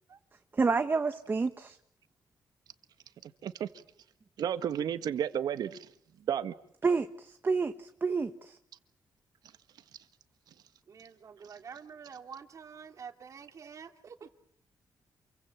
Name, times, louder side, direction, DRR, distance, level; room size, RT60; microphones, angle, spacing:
voice 1, 0.5-1.8 6.8-8.6, right 4 dB, 30° right, 1.2 m, -29 dB
voice 2, 3.2-3.7 4.4-5.9 6.3-6.5, right 9 dB, 85° right, 1.6 m, -32 dB
voice 3, 10.9-14.3, right 6 dB, 55° right, 2.7 m, -47 dB
28.0 x 23.5 x 7.4 m
cardioid pair, 110°, 7 cm